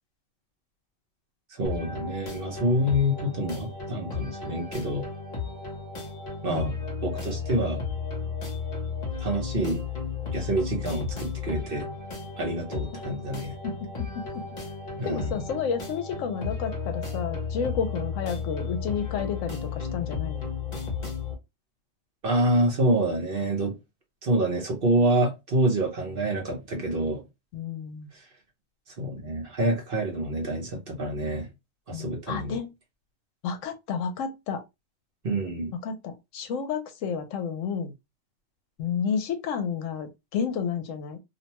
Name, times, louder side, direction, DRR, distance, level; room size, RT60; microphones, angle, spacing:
voice 1, 1.5-5.1 6.4-6.7 7.0-7.8 9.2-9.8 10.3-11.9 12.4-13.5 15.0-15.3 22.2-23.7 24.2-27.2 28.1-28.2 29.0-31.5 31.9-32.6 35.2-35.7, right 1 dB, 50° right, 0.9 m, -27 dB
sound 1, 1.6-21.3, left 5 dB, 40° left, 0.9 m, -34 dB
voice 2, 6.5-6.9 12.9-13.0 13.6-14.4 15.0-20.5 27.5-28.1 31.9-32.7 33.4-34.6 35.8-37.9 38.8-41.2, left 6 dB, 75° left, 0.9 m, -31 dB
2.6 x 2.1 x 2.8 m
omnidirectional pair, 1.3 m